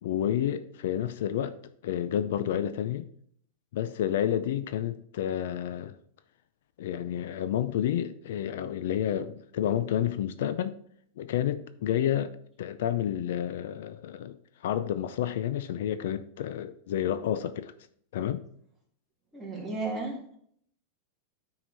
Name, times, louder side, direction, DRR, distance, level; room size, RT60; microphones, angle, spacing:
voice 1, 0.0-3.1 3.7-5.9 6.8-10.8 11.2-14.4 14.6-17.7 18.1-18.4, left 10 dB, 70° left, 0.5 m, -30 dB
voice 2, 19.3-20.4, right 3 dB, 5° right, 2.1 m, -34 dB
9.5 x 4.9 x 4.0 m
supercardioid pair, 160°, 0 cm